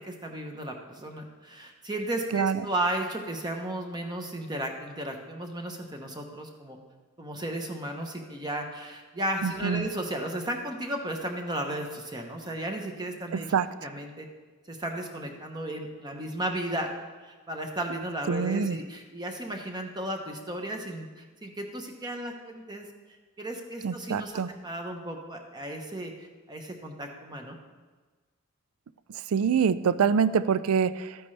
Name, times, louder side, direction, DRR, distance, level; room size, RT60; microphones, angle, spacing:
voice 1, 0.0-6.8 7.2-13.5 13.8-14.3 14.7-16.9 17.3-22.9 23.4-26.1 26.5-27.6, right 1 dB, 20° right, 3 dB, 1.0 m, -34 dB
voice 2, 9.4-9.9 13.3-13.7 18.3-18.8 23.8-24.5 29.3-31.2, right 6 dB, 75° right, 16 dB, 0.4 m, -25 dB
13.0 x 9.3 x 3.3 m, 1.3 s
head